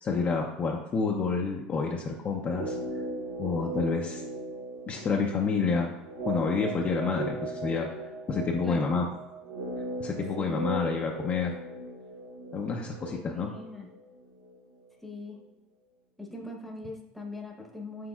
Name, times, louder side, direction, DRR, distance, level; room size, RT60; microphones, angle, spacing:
voice 1, 0.0-2.8 3.4-4.2 4.9-5.9 6.3-7.9 8.3-9.1 10.0-11.5 12.5-13.5, left 5 dB, 35° left, 0 dB, 0.5 m, -29 dB
sound 1, 2.4-14.6 14.8-14.9, right 2 dB, 90° right, 0.7 m, -38 dB
voice 2, 10.4-10.7 13.1-13.9 15.0-15.4 16.2-18.1, left 2 dB, 5° left, 0 dB, 0.9 m, -41 dB
6.1 x 3.3 x 2.3 m, 0.92 s
supercardioid pair, 100°, 4 cm